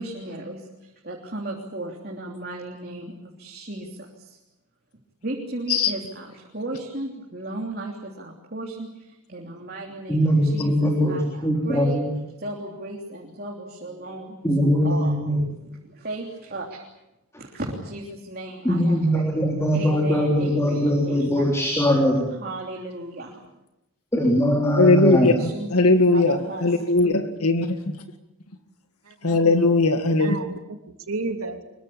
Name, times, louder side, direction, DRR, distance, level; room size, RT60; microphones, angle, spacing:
voice 1, 0.0-4.4 5.2-12.0 12.4-15.1 15.6-16.8 17.4-19.3 19.7-21.5 22.4-23.5 25.2-27.1, right 1 dB, 45° right, -1 dB, 3.3 m, -35 dB
voice 2, 10.1-12.1 14.4-15.4 18.6-22.3 24.1-25.3, equal, 10° left, 0 dB, 3.7 m, -21 dB
voice 3, 24.8-25.3 25.7-28.0 29.2-30.4, left 2 dB, 85° left, 7 dB, 2.1 m, -19 dB
voice 4, 29.0-29.4 30.0-31.6, right 3 dB, 80° right, 4 dB, 3.1 m, -33 dB
25.0 x 23.0 x 8.6 m, 0.92 s
head